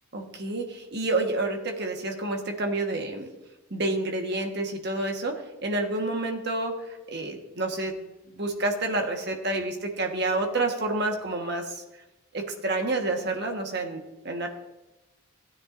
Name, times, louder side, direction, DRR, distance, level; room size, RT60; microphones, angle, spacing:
voice 1, 0.1-3.3 3.7-7.9 8.3-11.8 12.3-14.5, right 2 dB, 50° right, 3 dB, 1.4 m, -29 dB
15.0 x 9.7 x 2.6 m, 1.1 s
head